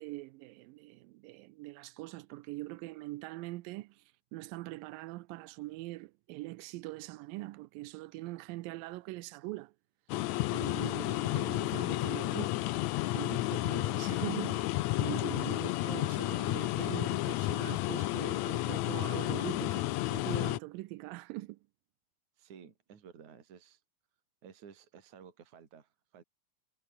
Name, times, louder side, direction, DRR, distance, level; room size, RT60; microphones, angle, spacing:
voice 1, 0.0-4.0 4.3-9.7 10.3-12.6 13.1-21.6, right 20 dB, 85° right, 2.4 m, -43 dB
sound 1, 10.1-20.6, left 17 dB, 85° left, 1.6 m, -32 dB
voice 2, 22.4-23.8 24.4-26.2, right 7 dB, 60° right, 4.1 m, -54 dB
omnidirectional pair, 4.0 m